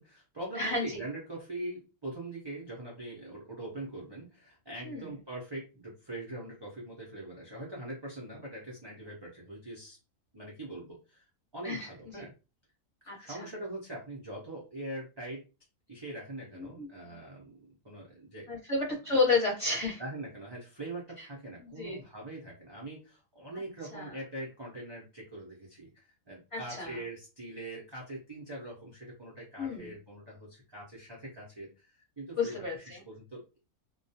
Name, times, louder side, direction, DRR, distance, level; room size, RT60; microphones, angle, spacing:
voice 1, 0.0-10.0 10.3-11.2 11.5-12.3 13.0-15.4 15.9-18.6 18.9-19.2 20.0-33.6, right 1 dB, 30° right, -4 dB, 0.5 m, -42 dB
voice 2, 0.6-1.0 4.8-5.1 11.6-11.9 12.1-12.2 13.1-13.5 16.6-17.2 18.5-20.0 21.6-22.0 23.9-24.1 26.5-27.0 29.6-29.9 32.4-33.0, left 3 dB, 25° left, -4 dB, 0.9 m, -31 dB
2.3 x 2.2 x 2.7 m, 0.30 s
omnidirectional pair, 1.4 m